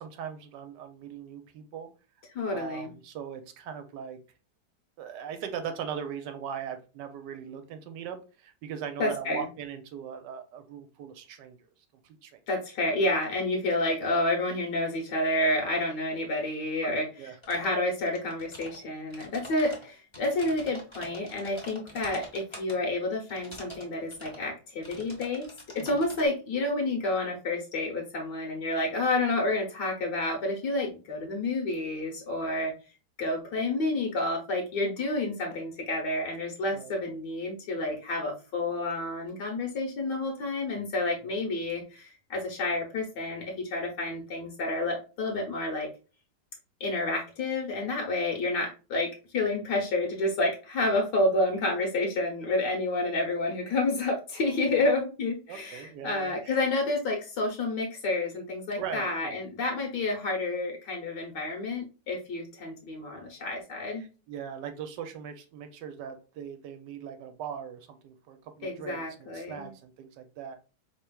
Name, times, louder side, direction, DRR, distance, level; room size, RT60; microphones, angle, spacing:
voice 1, 0.0-1.9 2.5-4.2 5.0-11.6 12.0-12.3 16.8-17.3 25.8-26.0 36.7-36.9 41.3-41.4 55.5-56.6 58.8-59.4 64.0-70.6, right 8 dB, 75° right, 7 dB, 1.2 m, -40 dB
voice 2, 2.3-2.9 9.0-9.5 12.5-17.1 17.5-25.4 25.8-32.7 33.2-45.9 46.8-49.1 49.3-64.0 68.6-69.7, left 2 dB, 70° left, 0 dB, 1.5 m, -29 dB
sound 1, 17.4-17.7 18.0-18.8 19.1-22.7 23.3-23.8 24.1-24.4 24.8-26.3, equal, 30° left, 0.6 m, -45 dB
4.4 x 3.3 x 2.2 m, 0.33 s
omnidirectional pair, 2.0 m